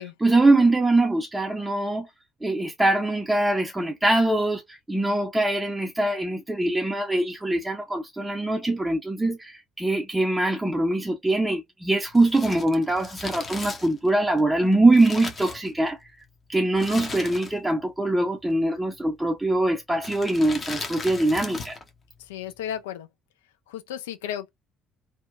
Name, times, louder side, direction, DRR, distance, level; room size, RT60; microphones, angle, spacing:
voice 1, 0.2-2.1 2.4-16.1 16.5-21.8, right 2 dB, 10° right, 0.5 m, -23 dB
Crumpling crinkling, 12.1-16.1 16.8-17.8 18.0-18.1 19.0-19.3 20.0-21.9 22.2-22.3, left 3 dB, 35° left, 0.7 m, -37 dB
voice 2, 22.2-23.1 23.7-24.5, left 10 dB, 70° left, 0.3 m, -34 dB
2.7 x 2.2 x 2.2 m
figure-of-eight pair, 55°, 0 cm